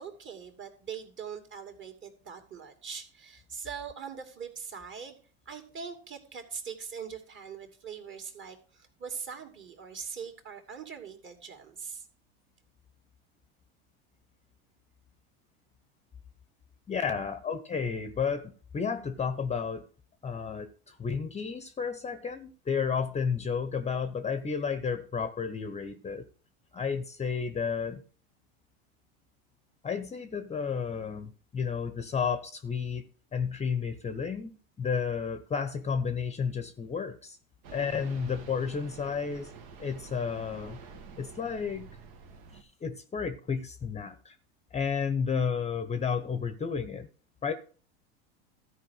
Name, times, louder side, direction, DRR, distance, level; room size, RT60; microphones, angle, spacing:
voice 1, 0.0-5.2 5.5-12.1, right 6 dB, 35° right, 5 dB, 2.6 m, -42 dB
voice 2, 16.9-19.9 20.2-26.2 26.7-28.0 29.8-33.1 33.3-37.4 37.7-39.5 39.8-40.8 41.2-41.9 42.5-44.4 44.7-47.1 47.4-47.5, left 6 dB, 20° left, 11 dB, 0.9 m, -32 dB
sound 1, 37.6-42.6, right 5 dB, 60° right, 1.8 m, -48 dB
13.5 x 4.8 x 6.5 m, 0.40 s
hypercardioid pair, 100°, 34 cm